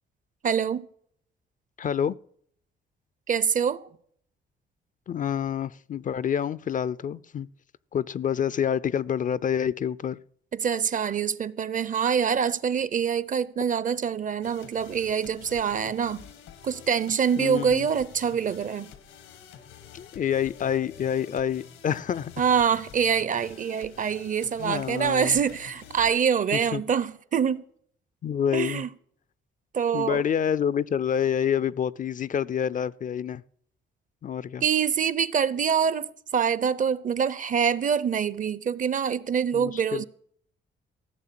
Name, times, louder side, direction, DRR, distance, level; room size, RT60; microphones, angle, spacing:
voice 1, 0.4-0.9 3.3-3.9 10.5-16.3 16.6-18.9 22.4-27.6 28.5-28.9 29.7-30.2 34.6-40.0, right 7 dB, 40° right, 0.6 m, -25 dB
voice 2, 1.8-2.2 5.1-7.5 7.9-10.2 17.4-17.9 19.9-22.3 24.6-25.4 26.5-26.8 28.2-28.8 29.9-33.4 34.2-34.6 39.5-40.0, left 8 dB, 40° left, 0.4 m, -27 dB
sound 1, 14.4-26.3, left 8 dB, 90° left, 1.5 m, -48 dB
15.0 x 6.6 x 7.6 m
cardioid pair, 90°, 20 cm